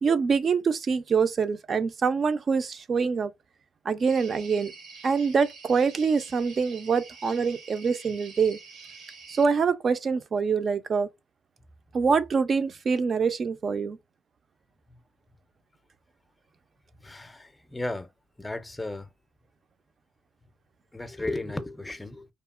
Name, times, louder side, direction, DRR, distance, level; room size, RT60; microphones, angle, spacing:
voice 1, 0.0-3.3 3.9-4.7 5.0-8.6 9.3-11.1 11.9-14.0, right 5 dB, 45° right, 0.4 m, -25 dB
sound 1, 4.0-9.5, right 4 dB, 90° right, 1.0 m, -47 dB
voice 2, 17.0-18.1 18.4-19.1 20.9-22.3, left 2 dB, 15° left, 0.5 m, -34 dB
2.8 x 2.3 x 2.3 m
cardioid pair, 90°, 0 cm